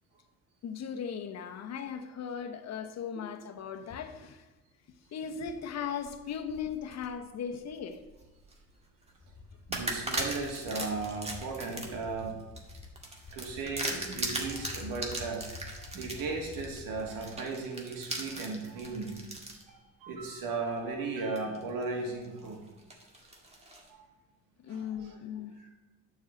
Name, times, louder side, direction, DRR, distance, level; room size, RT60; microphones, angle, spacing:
voice 1, 0.6-4.5 5.1-8.0 24.6-25.5, left 7 dB, 50° left, 8 dB, 1.1 m, -38 dB
sound 1, 5.8-7.1 7.6-8.6 9.0-9.2 9.7-19.6 20.2-20.3 21.4-21.8 22.2-23.9, right 2 dB, 20° right, 1.9 m, -38 dB
sound 2, 9.2-17.2, left 3 dB, 30° left, 2.3 m, -49 dB
voice 2, 9.7-12.4 13.3-19.2 19.5-22.6 23.9-24.1 24.7-25.1 25.6-25.7, right 3 dB, 85° right, 1 dB, 2.4 m, -36 dB
9.5 x 4.8 x 7.7 m, 1.1 s
cardioid pair, 105°, 33 cm